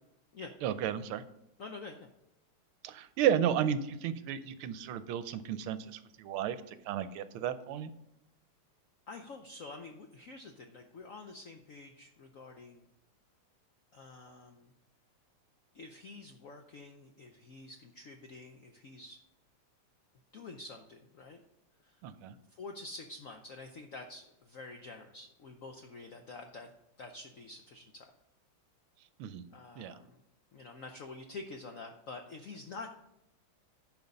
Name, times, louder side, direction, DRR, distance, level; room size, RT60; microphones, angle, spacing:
voice 1, 0.6-1.2 2.8-7.9 22.0-22.4 29.2-29.5 29.8-30.0, right 9 dB, 80° right, 12 dB, 1.5 m, -33 dB
voice 2, 1.6-2.1 9.1-12.9 13.9-14.7 15.7-19.2 20.3-21.4 21.8-22.0 22.5-26.7 27.0-28.1 29.5-30.2 30.5-32.9, left 3 dB, 90° left, 5 dB, 0.7 m, -47 dB
10.5 x 5.6 x 5.2 m, 0.85 s
omnidirectional pair, 2.4 m